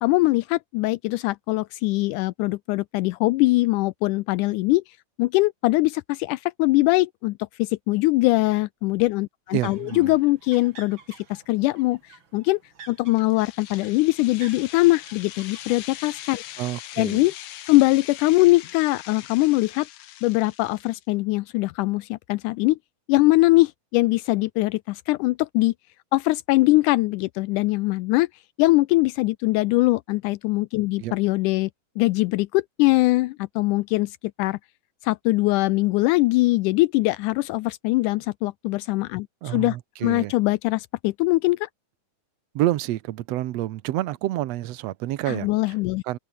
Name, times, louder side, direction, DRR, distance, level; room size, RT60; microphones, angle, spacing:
voice 1, 0.0-4.8 5.2-12.0 12.3-12.6 12.9-16.4 17.0-17.3 17.7-19.9 20.2-22.8 23.1-25.7 26.1-28.3 28.6-31.7 32.0-34.6 35.0-39.8 40.0-41.7 45.3-46.0, left 20 dB, 85° left, 2.0 m, -22 dB
sound 1, 9.5-16.7, right 5 dB, 40° right, 3.4 m, -50 dB
voice 2, 9.5-10.1 16.6-17.3 31.0-31.1 39.4-40.3 42.5-45.8 46.0-46.2, right 15 dB, 70° right, 1.7 m, -28 dB
sound 2, 13.2-21.0, left 13 dB, 70° left, 1.5 m, -41 dB
open air
omnidirectional pair, 3.7 m